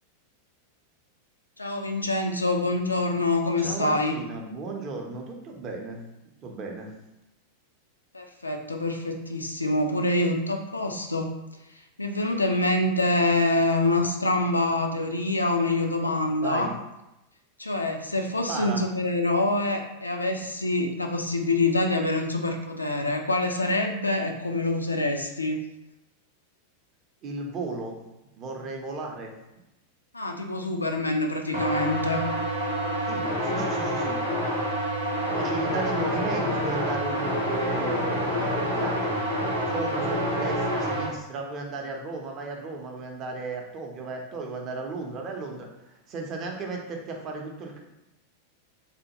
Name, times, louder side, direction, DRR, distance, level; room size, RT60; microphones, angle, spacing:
voice 1, 1.6-4.1 8.1-11.3 12.0-16.7 17.6-25.6 30.1-32.2, left 2 dB, 80° left, 3 dB, 0.3 m, -26 dB
voice 2, 3.6-6.0 6.4-6.9 16.4-16.7 18.5-18.8 27.2-28.0 28.3-29.3 33.1-34.2 35.3-39.2 39.7-47.8, right 3 dB, 35° right, 2 dB, 0.6 m, -35 dB
sound 1, 31.5-41.1, equal, 85° right, 0.8 m, -27 dB
3.4 x 2.2 x 2.9 m, 0.92 s
figure-of-eight pair, 90°, 0 cm